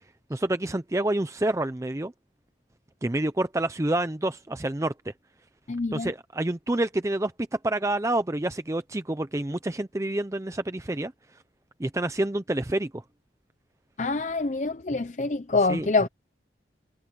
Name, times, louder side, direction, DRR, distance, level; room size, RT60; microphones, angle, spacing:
voice 1, 0.3-2.1 3.0-5.1 5.9-11.1 11.8-13.0 15.7-16.1, right 1 dB, 15° right, 0.5 m, -28 dB
voice 2, 5.7-6.1 14.0-16.1, left 3 dB, 40° left, 0.6 m, -26 dB
head